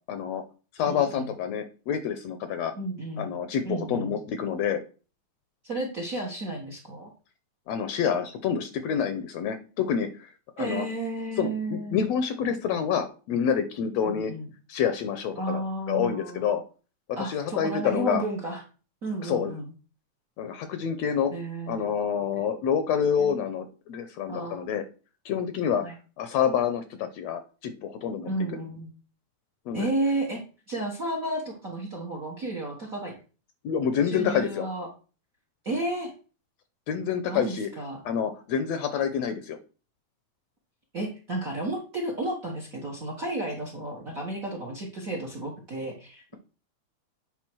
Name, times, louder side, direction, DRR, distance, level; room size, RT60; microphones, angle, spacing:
voice 1, 0.1-0.4 0.7-2.7 3.2-4.8 7.7-10.3 10.6-10.8 11.4-14.3 14.7-16.6 17.3-18.2 19.2-19.5 20.4-21.3 21.7-24.8 25.2-25.8 26.2-28.3 29.7-29.9 33.6-34.7 36.9-37.7 38.0-39.6, left 7 dB, 75° left, 9 dB, 1.7 m, -27 dB
voice 2, 0.9-1.3 2.8-3.3 3.6-4.2 5.6-7.1 10.6-12.1 14.0-14.5 15.3-16.4 17.2-18.6 19.0-19.7 21.3-21.9 22.3-22.4 23.2-23.4 24.3-24.6 25.8-25.9 28.2-28.9 29.7-30.4 30.7-33.1 34.0-34.9 35.6-36.1 37.3-38.0 40.9-46.3, right 2 dB, 45° right, 2 dB, 1.1 m, -32 dB
9.0 x 3.8 x 6.1 m, 0.36 s
omnidirectional pair, 3.5 m